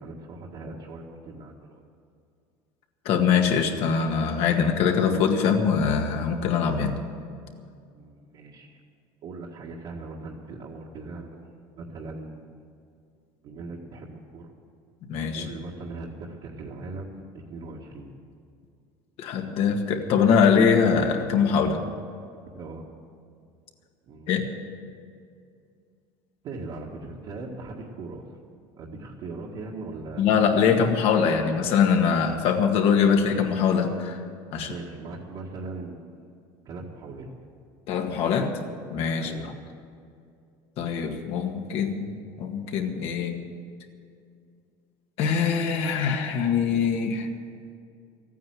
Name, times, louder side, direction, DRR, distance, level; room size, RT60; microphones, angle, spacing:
voice 1, 0.0-1.8 7.9-8.8 9.2-12.5 13.4-14.5 15.3-18.1 22.6-22.9 24.1-24.3 26.4-28.3 28.8-30.2 34.5-36.2 36.7-37.3 39.2-39.5, right 3 dB, 50° right, -4 dB, 1.8 m, -39 dB
voice 2, 3.1-7.0 15.1-15.5 19.2-21.8 24.3-24.4 30.2-34.2 34.5-34.7 37.9-38.5 38.9-39.3 40.8-43.4 45.2-47.3, left 6 dB, 60° left, 3 dB, 1.9 m, -23 dB
14.0 x 9.4 x 9.4 m, 2.4 s
cardioid pair, 130°, 11 cm